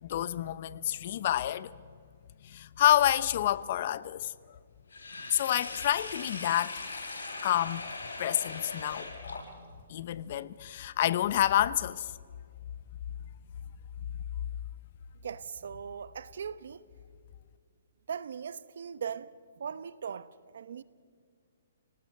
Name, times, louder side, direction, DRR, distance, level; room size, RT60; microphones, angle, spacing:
voice 1, 0.0-1.8 2.4-4.3 5.3-6.9 7.4-7.8 8.2-9.1 9.9-12.1, left 12 dB, 50° left, 0.8 m, -28 dB
Sink (filling or washing), 4.9-9.8, left 3 dB, 80° left, 6.8 m, -40 dB
voice 2, 15.1-16.8 18.1-20.8, right 7 dB, 70° right, 1.0 m, -40 dB
29.5 x 19.0 x 6.7 m
hypercardioid pair, 150°, 0 cm